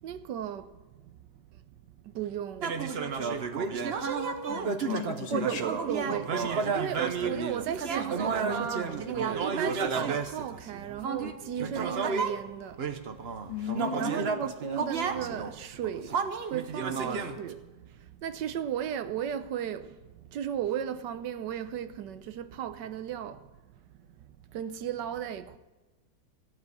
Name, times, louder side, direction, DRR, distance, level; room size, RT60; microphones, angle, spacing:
voice 1, 0.0-0.8 2.0-2.7 3.0-3.3 3.9-4.0 5.3-6.3 6.6-12.9 14.0-16.2 16.5-23.5 24.5-25.6, right 9 dB, 75° right, 1.3 m, -35 dB
sound 1, 2.6-12.4 12.8-17.5, right 5 dB, 45° right, 0.8 m, -31 dB
voice 2, 4.5-5.6 5.9-6.2 13.5-14.3, left 9 dB, 85° left, 2.3 m, -36 dB
15.0 x 7.7 x 9.5 m
omnidirectional pair, 2.0 m